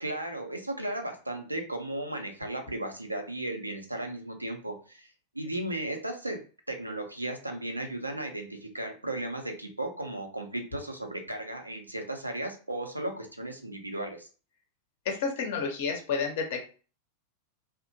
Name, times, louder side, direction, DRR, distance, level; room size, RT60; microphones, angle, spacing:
voice 1, 0.0-5.1 5.3-6.4 6.7-14.3, right 1 dB, 85° right, 4 dB, 0.5 m, -35 dB
voice 2, 15.0-16.7, left 5 dB, 55° left, 2 dB, 0.7 m, -30 dB
2.8 x 2.1 x 2.6 m, 0.36 s
figure-of-eight pair, 90°, 0 cm